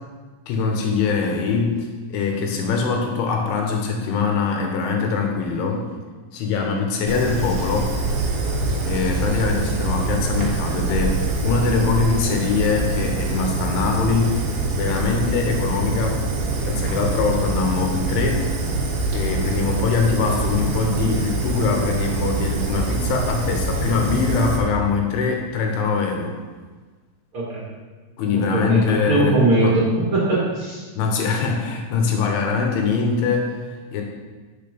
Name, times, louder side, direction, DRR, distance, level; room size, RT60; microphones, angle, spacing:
voice 1, 0.5-1.8 2.1-5.9 6.3-7.9 8.9-16.2 16.6-18.6 19.1-26.4 28.2-29.8 30.9-34.0, left 5 dB, 80° left, 1 dB, 3.3 m, -23 dB
Fire, 7.1-24.6, right 3 dB, 85° right, 1.8 m, -24 dB
voice 2, 28.3-30.8, right 2 dB, 55° right, -7 dB, 1.5 m, -20 dB
9.1 x 6.8 x 5.2 m, 1.4 s
omnidirectional pair, 5.8 m